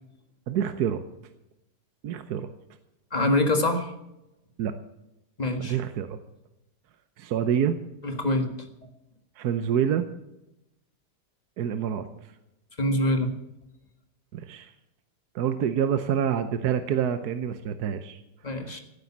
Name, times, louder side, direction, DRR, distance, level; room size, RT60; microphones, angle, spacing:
voice 1, 0.5-1.0 2.0-2.5 4.6-4.7 5.6-6.1 7.2-7.8 9.4-10.1 11.6-12.1 14.3-14.7 15.3-18.2 18.7-18.8, right 8 dB, 70° right, 10 dB, 1.3 m, -27 dB
voice 2, 3.1-3.9 5.4-5.8 8.0-8.5 12.8-13.3 18.4-18.8, left 1 dB, 25° left, 6 dB, 1.7 m, -25 dB
16.5 x 9.3 x 7.2 m, 0.90 s
omnidirectional pair, 1.8 m